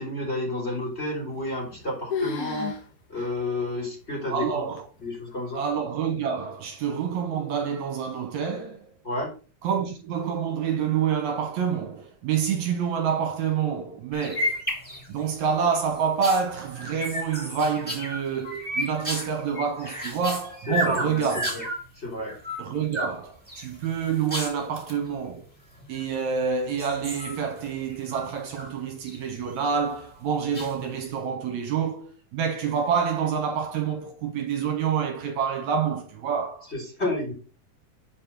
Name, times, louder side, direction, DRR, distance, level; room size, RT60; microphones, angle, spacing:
voice 1, 0.0-2.7 3.1-4.6 5.0-5.6 9.0-9.3 20.7-21.6 21.9-22.3 36.7-37.3, left 1 dB, 20° left, 3.1 m, -30 dB
sound 1, 1.3-1.8 2.1-2.8 3.2-3.3 3.9-4.0 4.8-5.2, left 5 dB, 70° left, 3.0 m, -31 dB
voice 2, 4.3-4.8 5.6-8.9 9.6-14.6 15.1-21.5 22.6-25.5 25.9-36.7, right 7 dB, 70° right, 2.2 m, -27 dB
sound 2, 14.1-15.3 15.7-21.8 22.3-23.1 23.5-25.0 25.8-26.3 26.7-28.7 29.0-29.7 30.5-31.1, equal, 5° left, 2.9 m, -33 dB
7.6 x 4.3 x 5.8 m
omnidirectional pair, 3.7 m